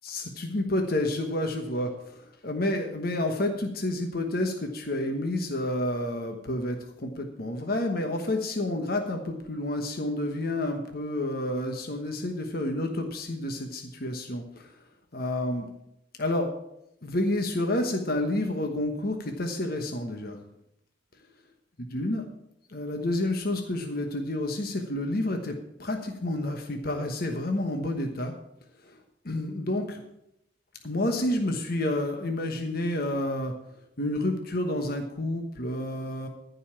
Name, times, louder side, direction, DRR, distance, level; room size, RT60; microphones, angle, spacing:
voice 1, 0.0-14.7 15.1-15.7 16.2-16.5 17.0-20.4 21.9-22.3 22.7-28.3 29.2-30.0 30.8-33.5 34.0-36.3, left 1 dB, 50° left, 4 dB, 1.2 m, -29 dB
14.5 x 5.5 x 7.4 m, 0.83 s
head